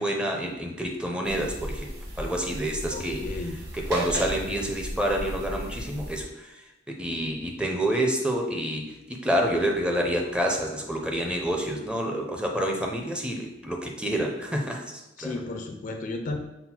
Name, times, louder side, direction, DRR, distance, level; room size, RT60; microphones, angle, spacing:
voice 1, 0.0-1.9 2.2-3.2 3.7-6.3 6.9-14.8 15.2-15.4, right 1 dB, 5° right, 1 dB, 0.5 m, -28 dB
sound 1, 1.2-6.2, equal, 65° right, 1.1 m, -35 dB
voice 2, 2.9-3.6 15.2-16.4, left 2 dB, 45° left, 5 dB, 0.4 m, -34 dB
5.8 x 2.0 x 4.3 m, 0.92 s
head